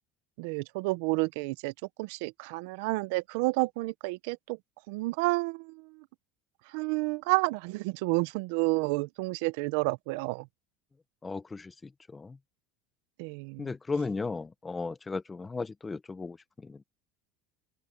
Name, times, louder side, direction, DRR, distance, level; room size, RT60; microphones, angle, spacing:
voice 1, 0.4-1.7 2.0-4.6 4.9-6.0 6.7-10.5 13.2-13.7, right 24 dB, 65° right, 0.5 m, -30 dB
voice 2, 11.2-12.4 13.6-16.8, left 4 dB, 10° left, 0.7 m, -36 dB
open air
cardioid pair, 175°, 0 cm